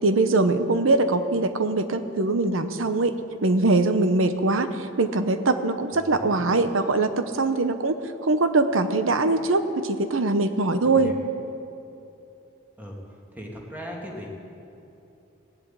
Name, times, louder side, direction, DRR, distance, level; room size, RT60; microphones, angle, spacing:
voice 1, 0.0-3.1 3.4-11.1, right 2 dB, 80° right, 9 dB, 0.9 m, -22 dB
voice 2, 6.1-6.5 10.8-11.1 12.8-13.0 13.3-14.4, equal, 10° right, -2 dB, 2.1 m, -38 dB
17.5 x 7.9 x 8.8 m, 2.8 s
head